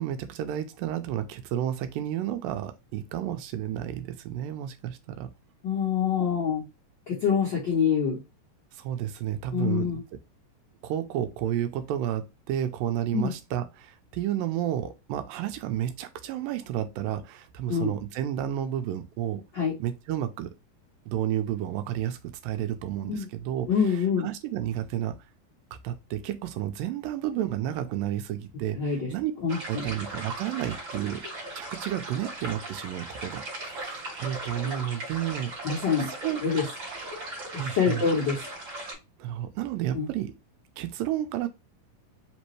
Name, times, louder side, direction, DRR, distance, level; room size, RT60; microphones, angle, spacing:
voice 1, 0.0-5.3 8.7-10.0 10.8-19.4 19.8-20.5 21.1-22.2 22.4-23.7 24.2-25.2 25.8-29.3 29.7-31.2 31.5-35.8 36.1-36.4 37.6-38.0 39.2-40.3 40.8-41.5, right 11 dB, 85° right, 2.3 m, -31 dB
voice 2, 5.6-6.6 7.1-8.2 9.5-10.0 13.1-13.3 17.7-17.9 19.5-19.7 23.1-23.3 23.7-24.3 28.8-29.1 29.4-29.8 34.6-34.7 35.6-36.1 36.4-36.6 37.5-38.4 39.9-40.1, left 6 dB, 70° left, 1.0 m, -26 dB
sound 1, 29.5-38.9, right 2 dB, 40° right, 2.2 m, -38 dB
5.4 x 3.0 x 3.1 m
omnidirectional pair, 4.0 m